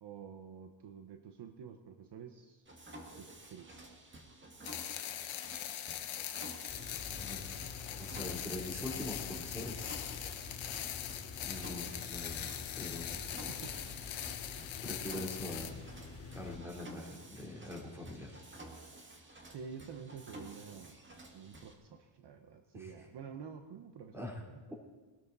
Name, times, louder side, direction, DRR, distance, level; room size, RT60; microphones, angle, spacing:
voice 1, 0.0-2.7 3.2-3.8 13.5-13.9 19.4-21.0 21.3-24.2 24.5-24.6, right 6 dB, 55° right, 6 dB, 1.1 m, -49 dB
Mechanisms, 2.7-21.7, right 1 dB, 25° right, 2.0 m, -52 dB
sound 1, 4.6-15.7, left 11 dB, 70° left, 1.1 m, -42 dB
sound 2, 6.7-16.6, left 4 dB, 25° left, 5.2 m, -48 dB
voice 2, 7.1-7.6 8.0-9.9 11.4-13.2 14.8-15.7 16.3-18.4 22.7-22.9 24.1-24.4, left 1 dB, 5° right, -2 dB, 3.3 m, -43 dB
21.0 x 13.0 x 4.1 m, 1.2 s
cardioid pair, 120°, 49 cm